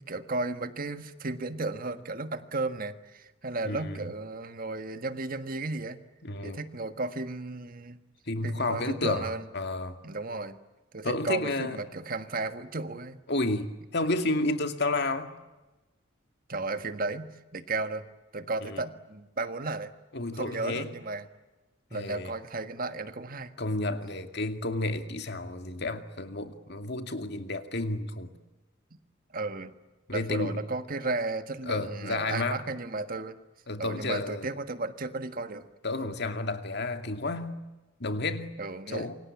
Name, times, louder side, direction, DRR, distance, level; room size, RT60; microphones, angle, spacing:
voice 1, 0.0-6.0 6.4-8.0 8.4-9.4 10.0-10.6 10.9-13.2 16.5-18.0 18.3-19.9 20.3-21.3 21.9-23.5 29.3-29.7 30.1-33.4 33.8-35.7 38.6-39.1, right 3 dB, 45° right, 10 dB, 1.5 m, -34 dB
voice 2, 3.6-4.1 6.2-6.6 8.3-10.0 11.0-11.8 13.3-15.3 18.6-18.8 20.1-20.9 21.9-22.3 23.6-28.3 30.1-30.6 31.7-32.6 33.7-34.5 35.8-37.6 38.0-38.6 38.9-39.2, left 2 dB, 55° left, 7 dB, 2.4 m, -31 dB
28.0 x 24.5 x 8.6 m, 1.1 s
head